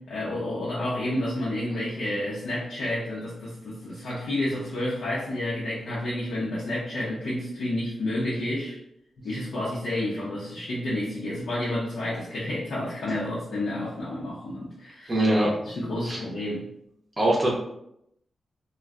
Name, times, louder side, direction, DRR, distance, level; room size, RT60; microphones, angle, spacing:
voice 1, 0.0-8.8 9.2-15.1 15.6-16.7, left 1 dB, 85° left, -7 dB, 0.8 m, -30 dB
voice 2, 15.1-15.5 16.1-16.2 17.2-17.5, right 1 dB, 25° right, -4 dB, 0.6 m, -22 dB
2.4 x 2.2 x 3.5 m, 0.78 s
wide cardioid pair, 145°, 0 cm